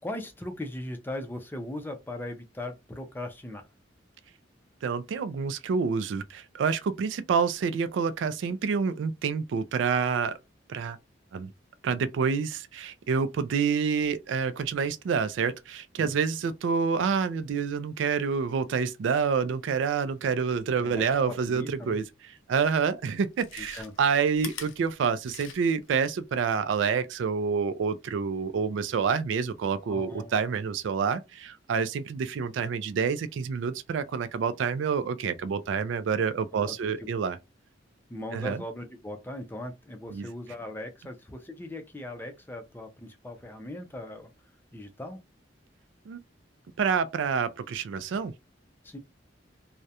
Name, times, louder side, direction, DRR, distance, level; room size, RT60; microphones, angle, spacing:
voice 1, 0.0-3.6 16.0-16.1 20.8-22.0 23.6-23.9 29.9-30.3 36.5-37.1 38.1-44.3 44.7-45.2 48.8-49.0, left 1 dB, 10° left, 0.4 m, -39 dB
voice 2, 4.8-10.4 10.7-11.0 11.3-11.5 11.8-22.0 22.5-37.4 38.3-38.6 40.1-40.3 46.1-46.2 46.8-48.3, right 6 dB, 70° right, 0.3 m, -28 dB
Chewing mastication, 22.5-22.6 23.2-25.9 26.2-26.3, left 8 dB, 80° left, 0.5 m, -43 dB
2.3 x 2.1 x 2.7 m
head